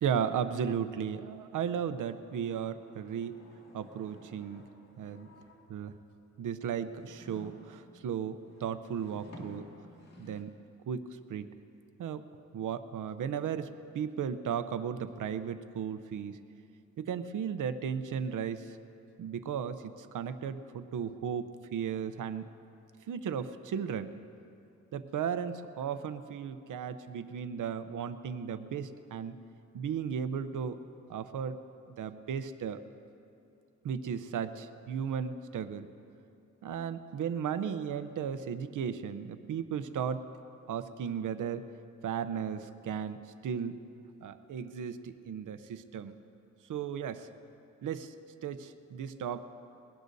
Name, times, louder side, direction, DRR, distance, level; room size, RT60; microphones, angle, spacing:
voice 1, 0.0-3.4 3.7-4.6 5.0-5.3 5.7-5.9 6.4-9.7 10.2-10.5 10.9-11.5 12.0-12.2 12.5-13.7 13.9-16.4 17.0-18.7 19.2-22.5 23.1-24.1 24.9-29.4 29.7-30.8 31.1-31.6 31.9-32.8 33.8-35.9 36.6-40.2 40.7-41.6 42.0-43.8 44.2-46.1 46.7-47.3 47.8-48.1 48.4-49.4, right 7 dB, 90° right, 11 dB, 0.7 m, -35 dB
sound 1, 1.6-6.0 6.6-10.4, left 1 dB, 60° left, 2.3 m, -55 dB
22.0 x 18.0 x 2.7 m, 2.6 s
wide cardioid pair, 110°, 30 cm